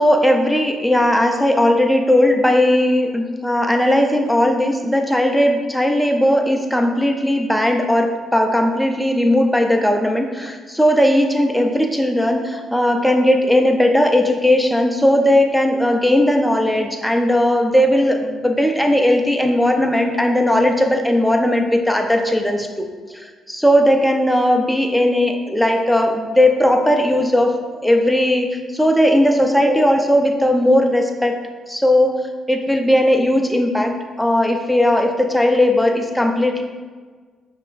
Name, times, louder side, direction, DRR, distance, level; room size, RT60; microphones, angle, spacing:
voice 1, 0.0-31.4 31.7-36.6, left 1 dB, ahead, 3 dB, 0.5 m, -17 dB
5.7 x 3.3 x 2.5 m, 1.5 s
cardioid pair, 90°, 0 cm